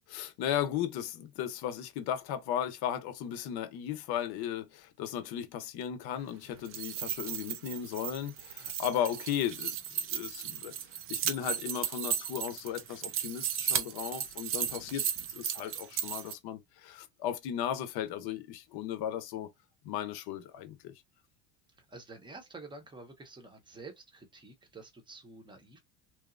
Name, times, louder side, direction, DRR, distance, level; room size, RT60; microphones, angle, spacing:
voice 1, 0.1-9.8 10.1-10.7 11.1-19.5 19.8-20.9, left 10 dB, 50° left, 0.8 m, -36 dB
sound 1, 6.5-16.3, right 9 dB, 30° right, 0.4 m, -35 dB
voice 2, 21.8-25.8, right 3 dB, 10° right, 0.7 m, -49 dB
3.0 x 2.0 x 2.4 m
supercardioid pair, 100°, 48 cm